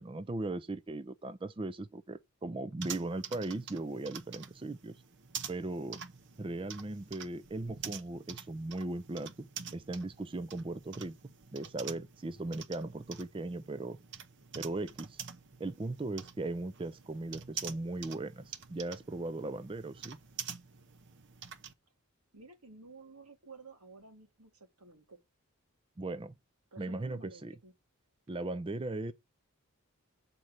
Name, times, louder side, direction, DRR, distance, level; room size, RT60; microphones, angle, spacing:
voice 1, 0.0-5.0 5.5-6.0 6.4-11.1 11.5-14.0 14.5-15.2 15.6-20.2 26.0-26.3 26.8-27.5 28.3-29.1, right 2 dB, 25° right, 0.4 m, -38 dB
sound 1, 2.8-21.7, right 7 dB, 50° right, 0.8 m, -47 dB
voice 2, 22.3-25.2 26.7-27.7, right 3 dB, 85° right, 2.2 m, -53 dB
7.6 x 4.3 x 6.6 m
head